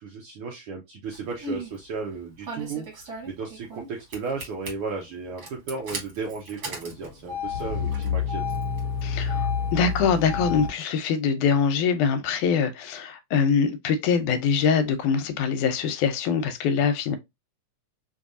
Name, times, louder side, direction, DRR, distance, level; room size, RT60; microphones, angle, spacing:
voice 1, 0.0-8.4, right 4 dB, 85° right, 1.2 m, -35 dB
Engine starting, 1.1-1.7 2.5-3.9 4.1-4.7 5.4-10.7, left 5 dB, 45° right, 1.2 m, -30 dB
voice 2, 9.0-17.2, left 6 dB, 80° left, 2.0 m, -23 dB
5.1 x 2.7 x 2.5 m
omnidirectional pair, 3.6 m